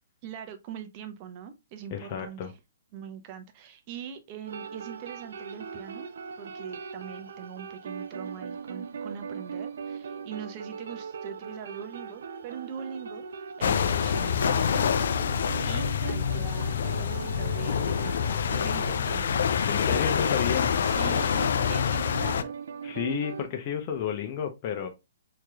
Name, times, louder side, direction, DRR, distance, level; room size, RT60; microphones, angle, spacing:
voice 1, 0.2-2.5 2.9-15.1 15.4-19.2 20.8-22.5, right 8 dB, 35° right, 0.8 m, -42 dB
voice 2, 1.9-2.5 19.7-20.8 22.8-24.9, left 8 dB, 35° left, 0.7 m, -31 dB
sound 1, 4.5-23.5, right 6 dB, 70° right, 0.5 m, -40 dB
sound 2, 13.6-22.4, left 7 dB, 65° left, 0.4 m, -26 dB
4.6 x 3.0 x 2.3 m
hypercardioid pair, 140°, 0 cm